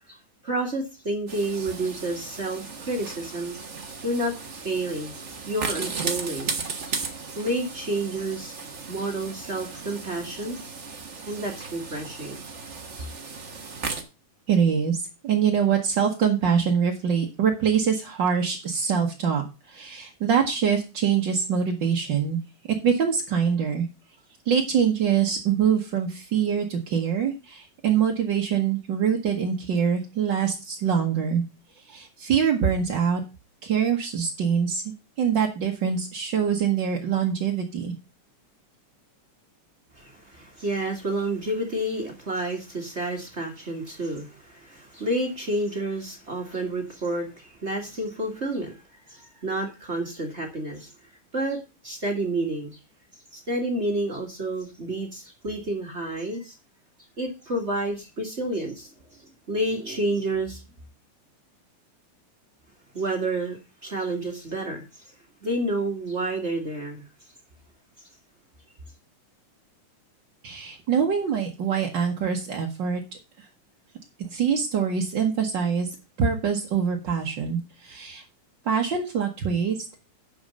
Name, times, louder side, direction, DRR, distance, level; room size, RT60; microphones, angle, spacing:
voice 1, 0.4-3.6 4.0-4.3 4.6-5.2 5.5-6.6 6.9-7.0 7.3-8.5 8.9-10.6 11.2-12.4 13.0-13.1 39.9-50.9 51.3-52.8 53.3-56.6 57.2-60.6 62.9-65.0 65.4-67.1, right 1 dB, 30° right, 1.2 m, -30 dB
sound 1, 1.3-14.0, right 4 dB, 85° right, 0.6 m, -36 dB
voice 2, 14.5-22.4 22.8-23.9 24.4-31.4 31.9-33.2 33.6-34.8 35.2-37.9 70.4-73.0 73.4-73.5 74.2-75.9 76.2-78.2 78.6-79.8, right 7 dB, 55° right, 1.3 m, -24 dB
11.0 x 5.2 x 5.3 m
omnidirectional pair, 3.7 m